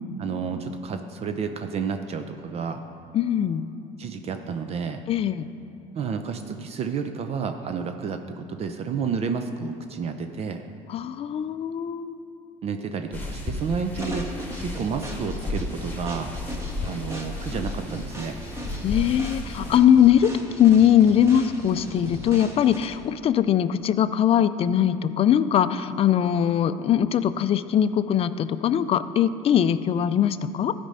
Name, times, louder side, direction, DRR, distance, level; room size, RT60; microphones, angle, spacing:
voice 1, 0.2-2.8 4.0-5.0 5.9-10.6 12.6-14.3 14.6-16.3 16.8-18.4, right 5 dB, 45° right, 7 dB, 0.6 m, -30 dB
voice 2, 3.1-3.6 5.1-5.5 10.9-12.2 18.8-20.3 20.6-30.7, left 9 dB, 40° left, 13 dB, 0.4 m, -21 dB
sound 1, 13.1-19.8, left 2 dB, 15° left, 1.7 m, -34 dB
sound 2, 14.0-23.1, equal, 20° right, 1.5 m, -38 dB
13.0 x 5.2 x 5.5 m, 2.7 s
supercardioid pair, 95°, 15 cm